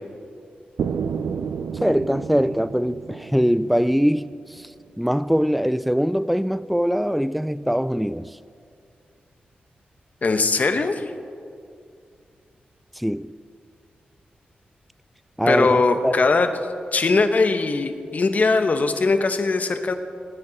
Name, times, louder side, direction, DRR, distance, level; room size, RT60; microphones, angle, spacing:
sound 1, 0.8-4.7, right 6 dB, 85° right, 0.4 m, -31 dB
voice 1, 1.7-4.7 5.0-8.4 13.0-13.3 15.4-16.1, equal, ahead, 0.3 m, -22 dB
voice 2, 10.2-11.0 15.5-16.5 16.9-19.9, left 3 dB, 50° left, 1.0 m, -20 dB
18.5 x 9.6 x 4.0 m
cardioid pair, 65°, 3 cm